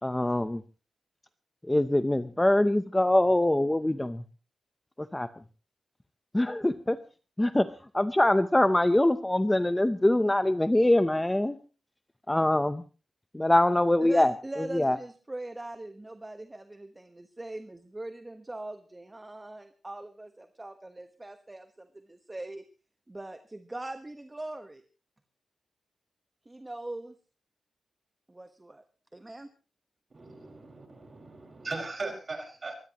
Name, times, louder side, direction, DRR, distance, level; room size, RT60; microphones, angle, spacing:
voice 1, 0.0-0.6 1.6-4.2 5.0-5.4 6.3-7.0 7.4-11.6 12.3-12.8 13.3-15.0, left 1 dB, 10° left, 11 dB, 0.7 m, -24 dB
voice 2, 14.1-22.6 23.1-24.8 26.4-27.1 28.3-28.8 29.1-29.5, right 2 dB, 15° right, 8 dB, 1.2 m, -41 dB
voice 3, 30.1-32.7, right 3 dB, 35° right, 4 dB, 5.1 m, -38 dB
23.0 x 17.0 x 3.0 m, 0.35 s
wide cardioid pair, 135°, 0 cm